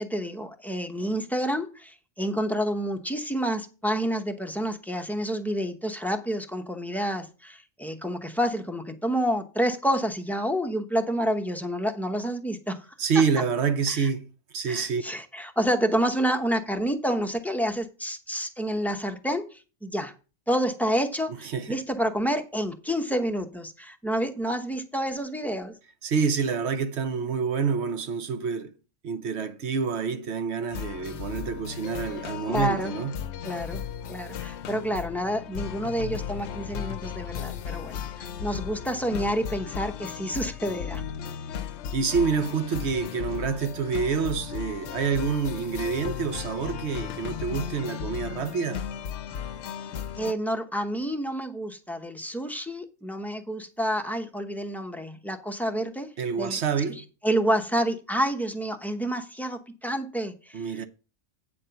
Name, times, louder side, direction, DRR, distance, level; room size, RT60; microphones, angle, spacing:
voice 1, 0.0-12.9 13.9-14.1 14.7-20.1 20.5-25.7 32.5-32.9 33.4-33.8 34.1-41.0 50.2-56.1 56.4-56.6 57.2-60.8, equal, ahead, 0.7 m, -29 dB
voice 2, 13.0-15.0 21.4-21.8 26.0-28.7 29.0-33.2 41.9-48.8 56.2-57.0 60.5-60.9, right 5 dB, 60° right, 1.0 m, -27 dB
sound 1, 30.7-50.3, left 8 dB, 65° left, 0.8 m, -35 dB
9.0 x 4.3 x 6.8 m
omnidirectional pair, 1.3 m